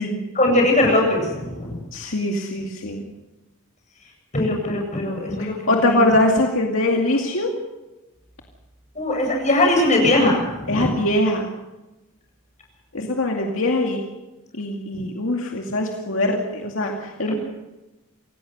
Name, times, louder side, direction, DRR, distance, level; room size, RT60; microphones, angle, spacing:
voice 1, 0.3-1.8 4.3-6.1 6.9-7.0 8.9-10.9 14.9-15.1 17.3-17.4, left 1 dB, 35° left, 0 dB, 7.8 m, -20 dB
voice 2, 1.9-3.0 5.4-7.5 10.7-11.5 12.9-14.0 14.6-17.3, left 1 dB, 70° left, 1 dB, 2.3 m, -22 dB
27.5 x 17.0 x 6.8 m, 1.0 s
head